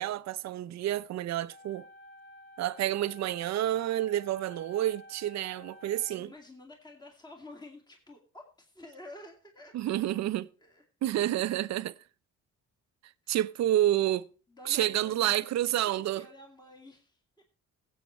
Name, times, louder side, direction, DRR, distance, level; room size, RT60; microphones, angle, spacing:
voice 1, 0.0-1.9 2.6-6.3 9.7-10.5 11.0-11.9 13.3-14.3 14.7-16.2, right 13 dB, 60° right, 0.6 m, -29 dB
sound 1, 1.5-6.5, left 1 dB, 35° left, 1.1 m, -52 dB
voice 2, 6.1-9.7 10.6-10.8 13.2-13.4 13.7-13.9 14.5-17.4, left 1 dB, 15° left, 2.3 m, -50 dB
16.5 x 8.0 x 3.1 m
cardioid pair, 90°, 30 cm